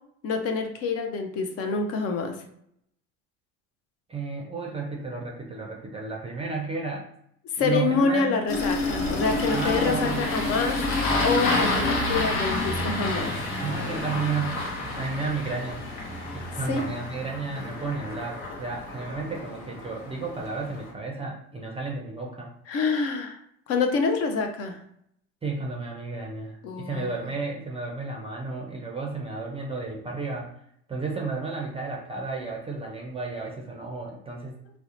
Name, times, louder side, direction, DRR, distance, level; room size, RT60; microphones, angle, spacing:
voice 1, 0.2-2.4 7.5-10.9 11.2-13.4 16.7-16.8 22.7-23.4 23.7-24.8 26.6-27.2, left 4 dB, 45° left, 5 dB, 0.5 m, -26 dB
voice 2, 4.1-7.1 7.6-8.4 9.5-10.3 13.6-15.9 16.3-22.5 25.4-30.5 30.9-34.8, right 4 dB, 15° right, -1 dB, 0.5 m, -32 dB
Engine starting, 8.5-20.9, left 2 dB, 65° left, 0.9 m, -29 dB
2.7 x 2.1 x 2.5 m, 0.70 s
hypercardioid pair, 80°, 34 cm